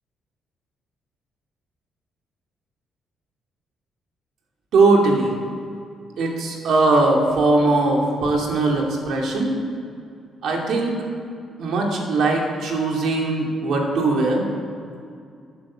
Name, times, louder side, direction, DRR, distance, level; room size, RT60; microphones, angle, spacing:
voice 1, 4.7-5.3 6.2-9.5 10.4-11.0 11.6-14.4, right 3 dB, 70° right, 0 dB, 2.5 m, -20 dB
9.7 x 9.2 x 7.4 m, 2.4 s
cardioid pair, 90°, 0 cm